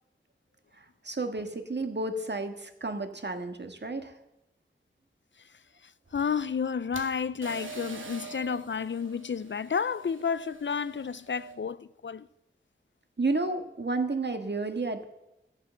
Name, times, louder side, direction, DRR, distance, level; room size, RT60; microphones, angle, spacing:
voice 1, 0.8-4.1 13.2-15.0, right 3 dB, 60° right, 1.7 m, -31 dB
voice 2, 6.1-12.3, left 6 dB, 70° left, 0.5 m, -31 dB
sound 1, 6.1-11.5, right 4 dB, 75° right, 2.2 m, -45 dB
14.0 x 8.8 x 7.5 m
wide cardioid pair, 55°, 20 cm